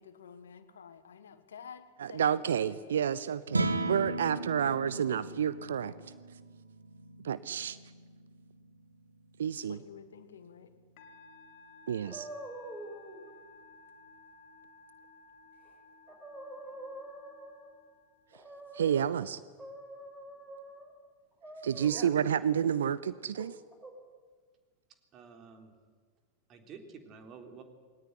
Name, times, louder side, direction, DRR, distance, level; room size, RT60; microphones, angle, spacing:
voice 1, 0.0-2.4 2.7-3.0 9.6-10.7, left 7 dB, 65° left, 11 dB, 1.6 m, -50 dB
voice 2, 2.0-5.9 7.2-7.8 9.4-9.8 11.9-12.3 18.7-19.4 21.6-23.6, right 8 dB, 65° right, 17 dB, 0.6 m, -30 dB
sound 1, 3.4-9.8, right 2 dB, 80° right, 1.6 m, -37 dB
Musical instrument, 11.0-18.6, left 3 dB, 50° left, 3.1 m, -57 dB
sound 2, 12.1-13.2 15.6-15.7 16.1-17.8 18.3-19.1 19.6-20.9 21.4-22.5 23.3-23.9, right 1 dB, 10° right, 5.6 m, -46 dB
voice 3, 25.1-25.7 26.5-27.6, right 6 dB, 30° right, 5 dB, 3.6 m, -49 dB
21.0 x 19.0 x 9.9 m, 1.5 s
figure-of-eight pair, 90°, 0 cm